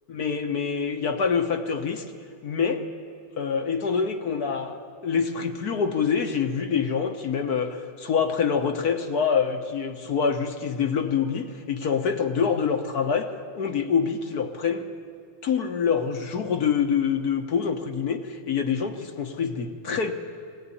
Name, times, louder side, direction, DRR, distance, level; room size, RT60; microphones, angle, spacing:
voice 1, 0.1-2.1 2.4-2.8 3.4-14.9 15.4-20.1, left 6 dB, 55° left, 6 dB, 1.5 m, -26 dB
20.0 x 17.5 x 9.8 m, 2.2 s
omnidirectional pair, 2.2 m